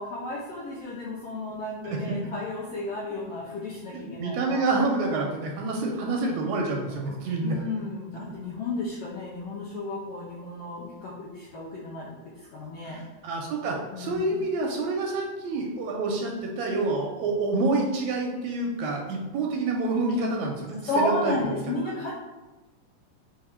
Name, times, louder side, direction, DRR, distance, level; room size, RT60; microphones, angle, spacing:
voice 1, 0.0-4.6 6.9-7.2 7.4-13.0 13.9-14.3 20.9-22.1, left 2 dB, 80° left, -4 dB, 1.3 m, -33 dB
voice 2, 1.8-2.2 3.9-7.6 12.8-21.5, right 3 dB, 80° right, 0 dB, 1.7 m, -28 dB
4.7 x 2.4 x 4.2 m, 1.2 s
omnidirectional pair, 3.4 m